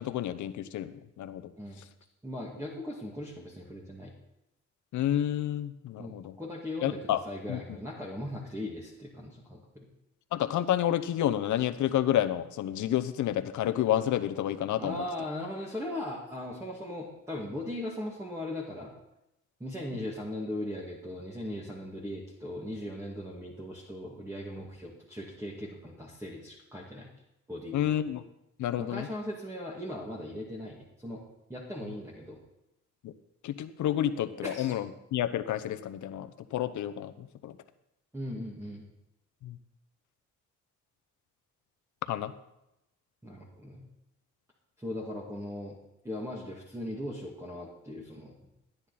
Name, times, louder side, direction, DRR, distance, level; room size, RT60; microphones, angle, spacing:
voice 1, 0.0-1.5 4.9-6.3 6.8-7.2 7.5-7.6 10.3-15.0 19.9-20.0 27.7-28.2 28.6-29.1 33.0-33.1 33.4-37.6 39.4-39.6 42.1-42.3, left 11 dB, 75° left, 11 dB, 0.9 m, -30 dB
voice 2, 2.2-4.1 6.0-9.9 14.8-18.9 19.6-27.1 27.5-28.0 28.8-31.2 31.5-32.4 34.4-34.7 38.1-38.9 43.2-43.9 44.8-45.8 46.0-48.3, left 1 dB, 10° right, -4 dB, 2.2 m, -38 dB
13.5 x 10.0 x 4.2 m, 0.87 s
cardioid pair, 90°, 30 cm